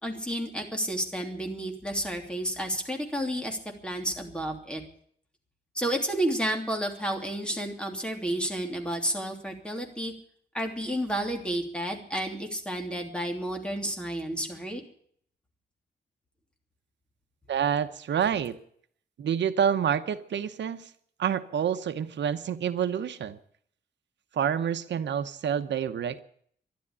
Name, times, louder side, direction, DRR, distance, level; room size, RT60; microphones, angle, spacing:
voice 1, 0.0-4.8 5.7-10.1 10.5-14.8, right 1 dB, 5° left, 2 dB, 3.0 m, -31 dB
voice 2, 17.5-18.6 19.2-20.9 21.2-23.4 24.3-26.2, right 8 dB, 90° right, 10 dB, 0.9 m, -28 dB
12.5 x 11.5 x 9.9 m, 0.62 s
wide cardioid pair, 130°, 18 cm